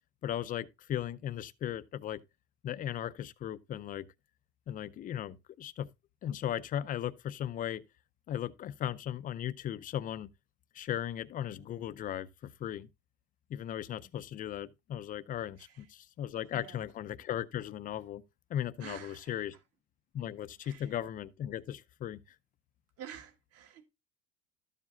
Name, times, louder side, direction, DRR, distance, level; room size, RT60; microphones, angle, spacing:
voice 1, 0.2-2.2 2.6-4.1 4.7-5.9 6.2-7.9 8.3-10.3 10.7-12.9 13.5-18.2 18.5-19.5 20.1-22.2, left 10 dB, 25° left, 0.5 m, -37 dB
voice 2, 16.5-16.8 18.8-19.6 20.6-20.9 23.0-23.8, right 9 dB, 50° right, 1.8 m, -49 dB
13.0 x 7.4 x 2.6 m
cardioid pair, 160°, 32 cm